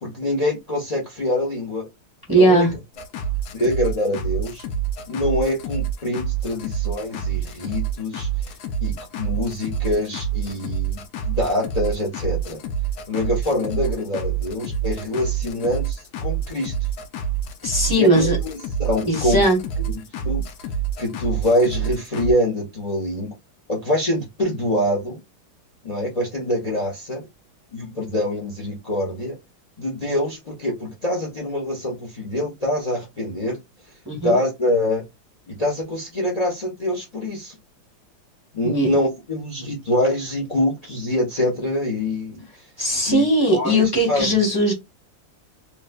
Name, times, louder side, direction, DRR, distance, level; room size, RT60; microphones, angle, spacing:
voice 1, 0.0-1.9 2.4-2.7 3.5-4.6 5.1-8.5 8.8-12.6 13.1-16.7 17.9-19.4 20.2-20.4 21.0-23.3 23.7-25.2 25.8-27.3 27.7-29.3 29.8-33.6 34.2-35.0 35.5-37.6 38.5-42.4 43.1-44.3, left 1 dB, 55° left, 0.4 m, -25 dB
voice 2, 2.3-2.8 17.6-18.4 19.0-19.6 34.0-34.3 38.6-38.9 42.8-44.7, right 1 dB, 15° right, 0.8 m, -19 dB
sound 1, 2.9-22.3, right 7 dB, 80° left, 0.8 m, -27 dB
3.1 x 3.0 x 2.2 m
omnidirectional pair, 2.3 m